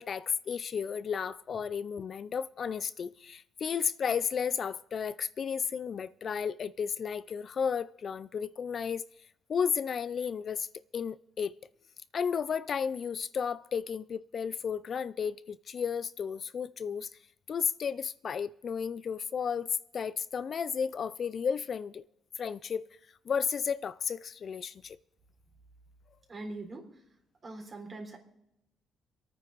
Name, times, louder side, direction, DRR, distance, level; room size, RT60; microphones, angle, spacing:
voice 1, 0.0-9.0 9.5-10.7 10.9-11.5 12.1-17.1 17.5-19.7 19.9-22.0 22.4-22.8 23.3-25.0, left 6 dB, 50° left, 0.4 m, -33 dB
voice 2, 26.3-26.9 27.4-28.2, right 2 dB, 40° right, 3.7 m, -42 dB
27.0 x 9.3 x 4.0 m
cardioid pair, 90°, 0 cm